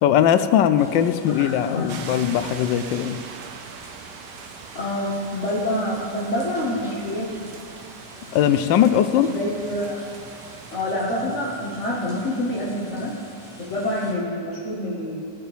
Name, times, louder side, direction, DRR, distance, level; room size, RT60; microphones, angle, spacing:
voice 1, 0.0-3.2 8.3-9.3, left 10 dB, 90° left, 10 dB, 1.3 m, -19 dB
sound 1, 0.8-14.1, equal, ahead, 1.8 m, -45 dB
voice 2, 1.4-2.0 4.7-7.3 9.3-10.0 10.7-13.1 13.6-15.2, left 1 dB, 45° left, -7 dB, 1.7 m, -27 dB
sound 2, 1.9-10.8, right 6 dB, 75° right, 1.3 m, -42 dB
18.5 x 9.0 x 3.4 m, 2.5 s
omnidirectional pair, 1.9 m